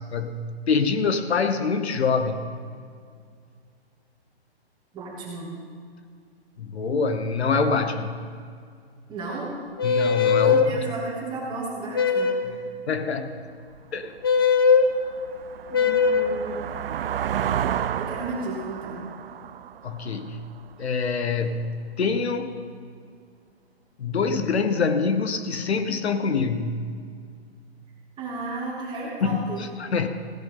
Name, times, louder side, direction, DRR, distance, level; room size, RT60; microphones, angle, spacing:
voice 1, 0.7-2.5 6.6-8.2 9.8-10.6 12.9-13.4 13.9-14.1 19.8-20.5 20.8-22.6 24.0-26.8 29.2-30.1, left 5 dB, 75° left, 9 dB, 1.1 m, -25 dB
voice 2, 4.9-5.5 9.1-9.6 10.4-12.6 15.7-16.8 18.0-19.1 28.2-29.6, right 3 dB, 15° right, -4 dB, 2.3 m, -34 dB
sound 1, 9.8-10.7 11.9-12.5 14.2-14.9 15.7-16.4, left 5 dB, 25° left, 0.4 m, -20 dB
sound 2, 13.8-13.9 14.4-20.9, right 9 dB, 60° right, 0.5 m, -31 dB
16.5 x 10.5 x 3.8 m, 2.2 s
hypercardioid pair, 155°, 32 cm